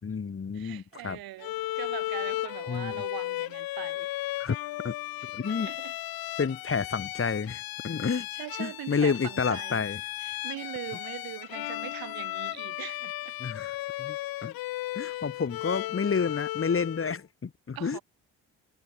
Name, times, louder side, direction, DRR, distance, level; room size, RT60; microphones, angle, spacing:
voice 1, 0.0-1.2 2.7-3.0 4.4-4.6 4.8-4.9 5.3-5.7 6.4-8.3 8.6-10.0 13.4-14.5 15.0-18.0, left 5 dB, 35° left, 3.7 m, -30 dB
voice 2, 0.5-4.2 5.2-5.9 8.0-9.8 10.2-13.4 15.0-15.2 17.7-18.0, right 15 dB, 70° right, 6.2 m, -42 dB
Bowed string instrument, 1.4-17.2, left 17 dB, 70° left, 1.7 m, -35 dB
hypercardioid pair, 55°, 37 cm